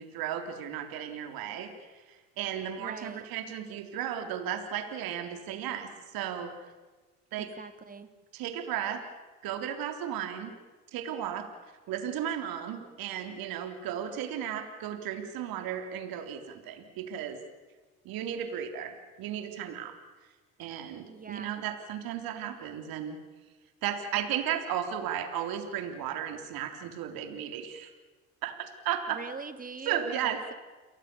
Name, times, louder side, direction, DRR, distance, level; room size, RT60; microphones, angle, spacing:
voice 1, 0.0-6.5 7.3-7.5 8.3-9.0 9.4-10.5 10.9-11.5 11.9-17.4 18.1-20.0 20.6-23.2 23.8-27.9 28.4-29.2 29.9-30.5, right 9 dB, 65° right, 6 dB, 3.7 m, -35 dB
voice 2, 2.8-3.2 7.4-8.1 21.1-21.5 29.1-30.5, right 4 dB, 20° right, 10 dB, 2.8 m, -42 dB
29.5 x 22.5 x 7.1 m, 1.3 s
hypercardioid pair, 75°, 38 cm